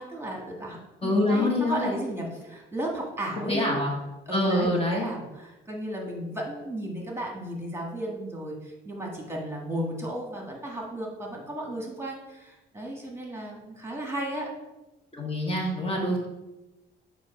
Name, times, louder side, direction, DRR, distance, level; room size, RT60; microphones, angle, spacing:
voice 1, 0.0-3.8 4.3-14.5, right 1 dB, 10° right, -1 dB, 1.6 m, -34 dB
voice 2, 1.0-2.0 3.5-3.9 4.3-5.1 15.1-16.3, left 1 dB, 30° left, -2 dB, 1.3 m, -25 dB
7.4 x 2.7 x 4.9 m, 1.1 s
cardioid pair, 90°, 20 cm